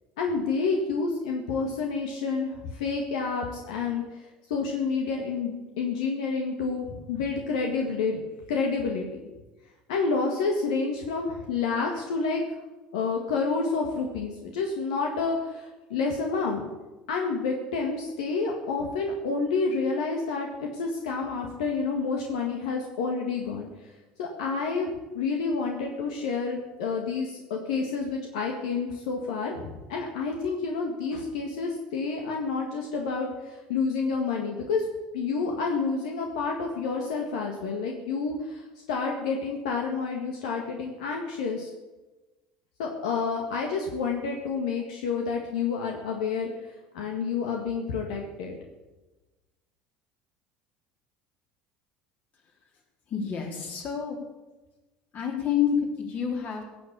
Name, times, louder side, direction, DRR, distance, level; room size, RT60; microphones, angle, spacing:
voice 1, 0.2-4.0 4.5-9.2 9.9-12.4 12.9-16.7 17.1-23.7 24.2-34.8 35.1-41.7 42.8-46.7 46.9-48.6, left 4 dB, 80° left, 1 dB, 1.8 m, -29 dB
voice 2, 53.1-54.2 55.1-56.6, left 8 dB, 45° left, 0 dB, 4.1 m, -28 dB
16.5 x 7.8 x 7.0 m, 1.2 s
hypercardioid pair, 75°, 4 cm